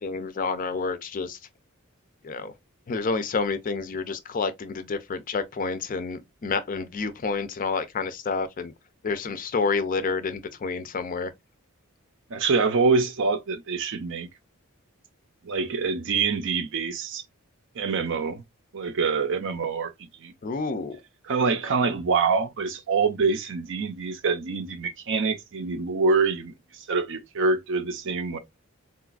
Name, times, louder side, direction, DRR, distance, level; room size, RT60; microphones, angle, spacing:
voice 1, 0.0-1.4 2.2-2.5 2.9-8.7 9.0-11.3 20.4-21.0, left 4 dB, 40° left, 0.4 m, -29 dB
voice 2, 12.3-14.3 15.4-17.2 17.8-18.4 18.7-20.3 21.2-28.4, right 4 dB, 60° right, 0.6 m, -25 dB
3.9 x 2.3 x 2.3 m
head